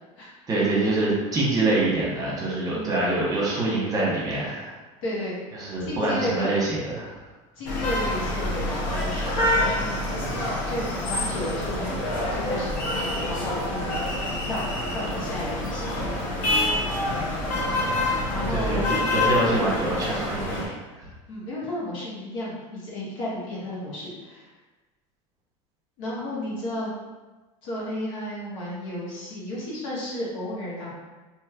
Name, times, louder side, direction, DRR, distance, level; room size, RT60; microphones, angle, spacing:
voice 1, 0.5-4.7 5.5-7.1 18.5-21.1, right 2 dB, 20° right, -5 dB, 0.9 m, -25 dB
voice 2, 2.7-3.2 5.0-5.4 5.9-6.5 7.6-10.2 10.7-14.0 14.5-15.9 18.3-18.9 21.3-24.5 26.0-26.9 27.6-30.9, left 1 dB, 85° left, -7 dB, 1.4 m, -33 dB
sound 1, 7.7-20.7, left 1 dB, 60° left, 0.9 m, -27 dB
3.2 x 2.9 x 2.4 m, 1.2 s
supercardioid pair, 130°, 16 cm